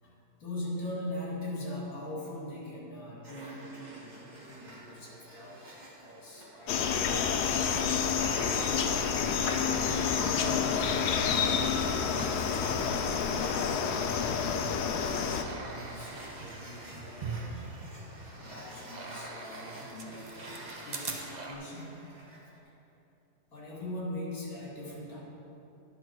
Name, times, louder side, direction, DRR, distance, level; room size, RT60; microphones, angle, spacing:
voice 1, 0.0-8.8 9.8-14.3 15.0-17.5 18.3-21.9 23.5-25.2, left 1 dB, 60° left, -5 dB, 2.5 m, -42 dB
sound 1, 3.2-22.6, right 1 dB, 30° right, 1.2 m, -50 dB
sound 2, 6.7-15.4, left 6 dB, 75° left, 1.1 m, -29 dB
sound 3, 6.9-12.9 13.3-21.5, right 3 dB, 50° right, 0.5 m, -44 dB
10.5 x 6.2 x 4.6 m, 2.8 s
omnidirectional pair, 1.8 m